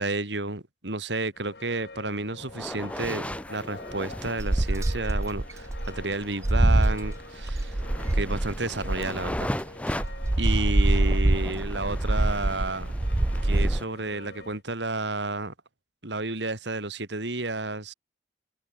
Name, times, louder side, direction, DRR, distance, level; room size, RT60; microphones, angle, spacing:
voice 1, 0.0-7.8 8.1-9.5 10.4-12.9 13.4-15.5 16.0-17.9, right 2 dB, 80° right, 3.4 m, -31 dB
sound 1, 1.3-14.6, left 3 dB, 65° left, 2.1 m, -46 dB
sound 2, 2.4-13.8, left 1 dB, 10° left, 1.6 m, -38 dB
sound 3, 4.4-9.5 10.0-13.8, right 1 dB, 15° right, 0.4 m, -24 dB
head